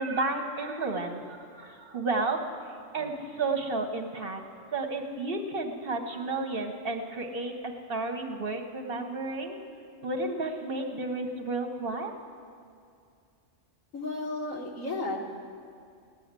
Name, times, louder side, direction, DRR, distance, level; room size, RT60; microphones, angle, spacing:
voice 1, 0.0-2.5 2.9-4.4 4.7-9.6 10.0-12.1, right 3 dB, 50° right, 4 dB, 1.1 m, -32 dB
voice 2, 13.9-15.2, left 2 dB, 85° left, 0 dB, 2.0 m, -33 dB
16.5 x 7.2 x 9.5 m, 2.4 s
omnidirectional pair, 1.3 m